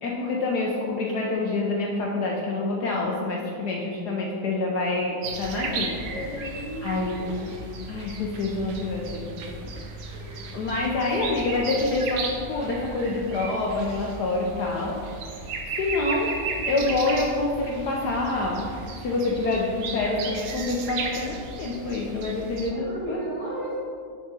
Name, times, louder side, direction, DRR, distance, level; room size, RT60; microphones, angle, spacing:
voice 1, 0.0-6.0 6.8-7.5 7.9-15.0 15.7-16.3 16.6-23.2, left 2 dB, 70° left, -2 dB, 1.0 m, -27 dB
sound 1, 5.2-22.7, right 4 dB, 85° right, 1.7 m, -35 dB
voice 2, 6.1-6.8 7.2-7.5 10.1-10.5 22.7-23.8, right 1 dB, 50° right, -9 dB, 1.5 m, -35 dB
6.1 x 6.0 x 4.1 m, 2.3 s
omnidirectional pair, 2.4 m